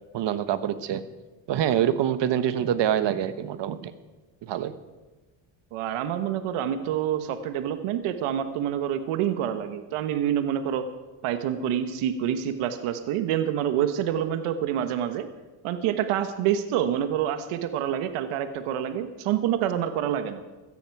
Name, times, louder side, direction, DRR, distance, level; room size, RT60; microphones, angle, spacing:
voice 1, 0.1-1.0 1.5-3.9 4.4-4.7, right 10 dB, 55° right, 12 dB, 1.2 m, -25 dB
voice 2, 5.7-10.9 11.2-15.3 15.6-20.4, right 10 dB, 80° right, 10 dB, 1.3 m, -27 dB
17.0 x 13.5 x 4.7 m, 1.2 s
supercardioid pair, 85°, 49 cm